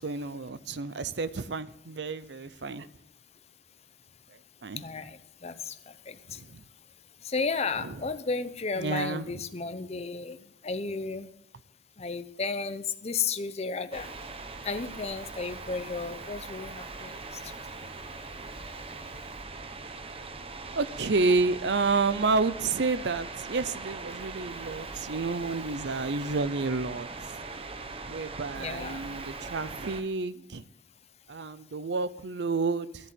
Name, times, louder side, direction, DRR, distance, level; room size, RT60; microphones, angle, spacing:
voice 1, 0.0-2.9 4.6-4.8 6.3-6.6 7.8-7.9 8.8-9.3 20.8-27.1 28.0-30.6 31.3-33.1, right 3 dB, 75° right, 0.7 m, -30 dB
voice 2, 4.8-6.4 7.2-10.4 10.6-11.3 12.0-14.1 14.6-17.2 17.4-17.5 28.6-29.1, left 4 dB, 35° left, 0.8 m, -33 dB
sound 1, 13.9-30.0, right 3 dB, 35° right, 0.9 m, -41 dB
14.0 x 7.8 x 7.6 m
head